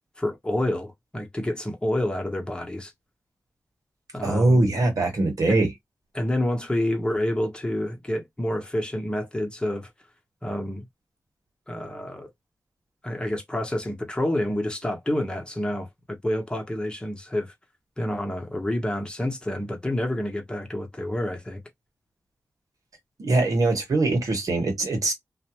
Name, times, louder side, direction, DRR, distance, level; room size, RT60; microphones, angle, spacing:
voice 1, 0.2-2.9 4.1-4.6 5.5-5.7 6.1-9.9 10.4-10.8 11.7-12.3 13.0-17.5 18.0-21.6, left 1 dB, 15° left, 0.8 m, -28 dB
voice 2, 4.2-5.7 23.2-25.1, right 2 dB, 75° right, 1.2 m, -22 dB
2.5 x 2.1 x 2.8 m
wide cardioid pair, 70°, 6 cm